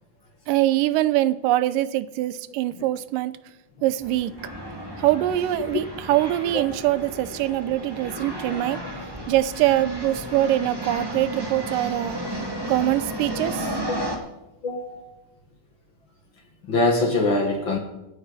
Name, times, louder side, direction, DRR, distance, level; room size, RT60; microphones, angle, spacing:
voice 1, 0.5-3.4 3.8-4.3 5.0-8.8 9.3-12.2 12.7-13.8, right 14 dB, 90° right, 15 dB, 2.3 m, -23 dB
sound 1, 4.0-14.1, equal, 10° right, 1.8 m, -33 dB
voice 2, 13.9-14.2 14.6-15.0 16.7-17.8, left 2 dB, 45° left, 3 dB, 2.0 m, -23 dB
26.0 x 9.7 x 4.1 m, 0.94 s
omnidirectional pair, 3.8 m